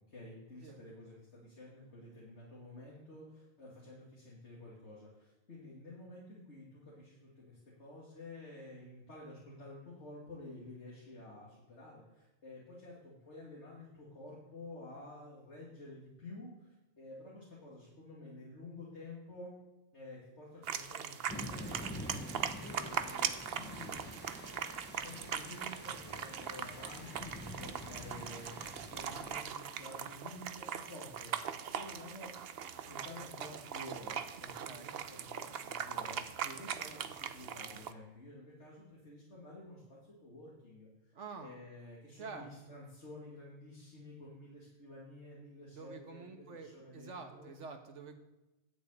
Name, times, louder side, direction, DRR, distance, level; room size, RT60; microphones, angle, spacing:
voice 1, 0.1-19.5 19.9-22.3 22.6-24.0 24.9-32.3 32.6-41.1 41.4-47.5, left 2 dB, 70° left, -6 dB, 2.9 m, -51 dB
sound 1, 20.5-29.2, equal, 30° left, 4.6 m, -57 dB
sound 2, 20.6-37.9, right 8 dB, 60° right, 0.9 m, -41 dB
sound 3, 21.3-29.4, left 1 dB, 10° left, 0.6 m, -47 dB
voice 2, 34.6-34.9 36.4-36.7 41.2-41.6 42.2-42.5 45.7-48.1, right 4 dB, 80° right, 5 dB, 1.6 m, -48 dB
11.5 x 6.4 x 8.3 m, 1.0 s
omnidirectional pair, 1.2 m